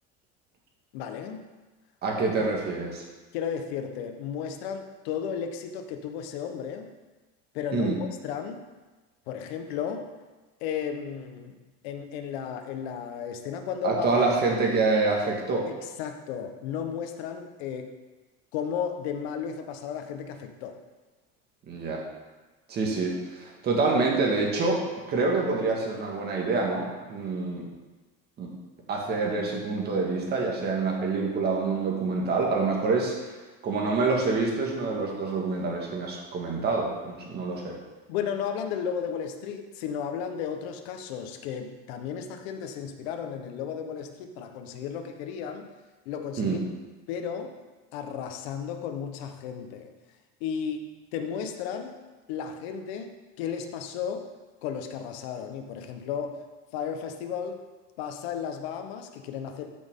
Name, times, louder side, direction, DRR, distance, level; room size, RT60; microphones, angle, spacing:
voice 1, 0.9-1.5 3.3-6.9 7.5-8.6 9.3-10.1 10.6-11.6 11.8-14.3 15.7-17.9 18.5-20.8 38.1-45.7 46.0-46.6 47.1-47.5 47.9-49.9 50.4-52.0 52.3-54.3 54.6-56.4 56.7-57.6 58.0-59.7, left 7 dB, 80° left, 6 dB, 1.2 m, -34 dB
voice 2, 2.0-3.0 7.7-8.0 13.8-15.7 21.7-22.0 22.7-24.8 25.1-27.6 28.4-28.5 28.9-33.3 33.6-37.8 46.4-46.6, right 3 dB, 30° right, 0 dB, 1.9 m, -26 dB
13.5 x 6.2 x 3.8 m, 1.2 s
cardioid pair, 160°, 31 cm